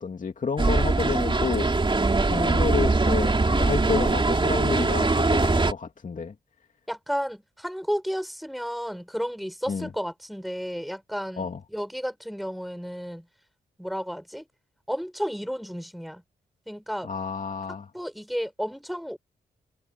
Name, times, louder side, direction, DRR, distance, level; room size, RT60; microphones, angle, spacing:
voice 1, 0.0-1.9 2.3-6.3 9.7-9.9 11.4-11.6 17.0-17.9, left 5 dB, 50° left, 2.5 m, -30 dB
sound 1, 0.6-5.7, right 3 dB, 30° right, 3.0 m, -22 dB
voice 2, 6.9-13.3 13.8-14.4 14.9-16.2 16.7-17.1 17.9-19.2, equal, ahead, 5.9 m, -32 dB
cardioid pair, 75°, 17 cm